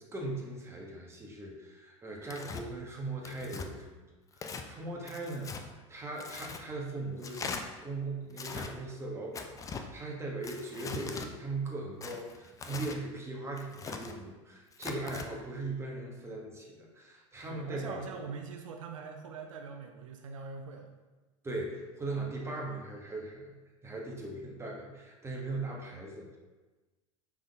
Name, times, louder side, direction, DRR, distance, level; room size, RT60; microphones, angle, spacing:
voice 1, 0.1-4.0 4.3-7.5 7.8-18.0 21.4-23.5 23.8-26.4, right 2 dB, 15° right, -1 dB, 1.0 m, -39 dB
Tearing, 2.3-2.6 3.2-3.7 4.3-4.7 5.1-5.6 6.2-6.6 7.2-7.6 8.3-8.7 9.3-9.9 10.4-11.3 12.0-13.0 13.6-14.1 14.7-15.3, left 5 dB, 20° left, 0.4 m, -41 dB
voice 2, 17.5-20.9, right 5 dB, 85° right, 4 dB, 0.4 m, -43 dB
5.3 x 3.5 x 2.3 m, 1.2 s
hypercardioid pair, 90°, 16 cm